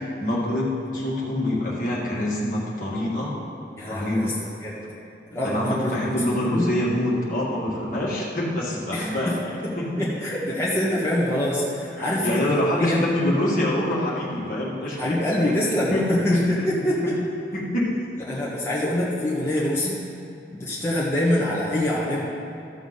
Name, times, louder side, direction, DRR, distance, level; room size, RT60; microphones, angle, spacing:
voice 1, 0.2-3.4 3.9-4.3 5.4-9.4 9.8-9.9 12.0-15.2 15.4-15.5 15.9-16.0 16.3-16.4 17.5-17.9, left 1 dB, 50° left, -5 dB, 1.8 m, -25 dB
voice 2, 3.8-4.3 4.6-4.8 5.3-6.7 8.9-9.3 9.6-13.0 14.9-17.1 18.3-20.0 20.5-22.2, left 1 dB, 15° left, -8 dB, 1.3 m, -25 dB
13.5 x 7.0 x 4.0 m, 2.8 s
head